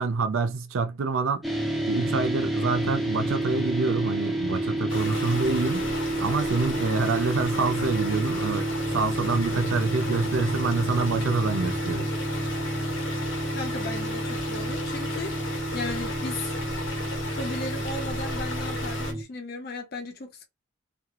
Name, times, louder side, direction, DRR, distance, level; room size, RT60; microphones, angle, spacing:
voice 1, 0.0-1.4 1.9-5.9 6.2-12.1, right 4 dB, 85° right, 0.5 m, -27 dB
sound 1, 1.4-19.2, right 1 dB, ahead, 0.4 m, -30 dB
sound 2, 4.9-19.1, left 2 dB, 75° left, 1.1 m, -35 dB
voice 2, 13.5-15.3 15.7-16.5 17.4-20.5, left 2 dB, 50° left, 0.6 m, -35 dB
2.4 x 2.2 x 2.9 m
head